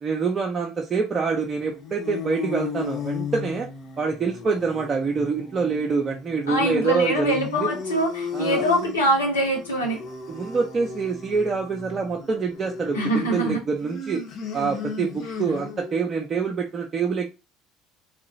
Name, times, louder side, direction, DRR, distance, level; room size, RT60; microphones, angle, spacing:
voice 1, 0.0-3.7 4.0-7.7 8.3-8.6 10.3-14.2 14.5-17.3, right 5 dB, 35° right, 0.6 m, -26 dB
sound 1, 1.5-16.0, left 6 dB, 50° left, 1.0 m, -35 dB
voice 2, 6.5-10.0 12.9-13.6, equal, 85° left, 1.2 m, -23 dB
3.7 x 2.9 x 2.7 m
figure-of-eight pair, 60°, 0 cm